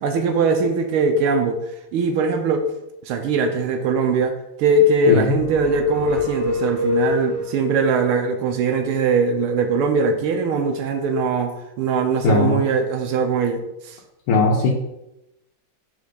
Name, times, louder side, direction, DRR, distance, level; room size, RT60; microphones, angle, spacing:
voice 1, 0.0-1.6 1.9-2.7 3.1-14.0, right 3 dB, 80° right, 5 dB, 1.6 m, -21 dB
sound 1, 5.3-7.8, left 3 dB, 10° right, 0.9 m, -26 dB
voice 2, 12.2-12.6 14.3-14.7, left 3 dB, 80° left, -4 dB, 1.8 m, -17 dB
5.3 x 3.8 x 5.1 m, 0.86 s
omnidirectional pair, 2.4 m